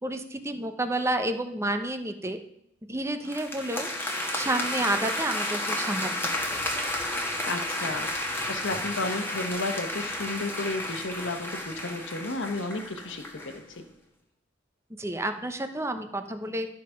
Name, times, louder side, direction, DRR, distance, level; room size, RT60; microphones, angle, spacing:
voice 1, 0.0-2.4 2.9-3.9 4.3-6.3 15.0-16.7, right 1 dB, 15° right, 8 dB, 0.8 m, -30 dB
sound 1, 3.2-13.6, left 1 dB, 10° left, 1.5 m, -32 dB
voice 2, 7.5-8.1 8.5-13.8, left 2 dB, 80° left, 7 dB, 1.2 m, -33 dB
12.5 x 5.2 x 5.7 m, 0.77 s
head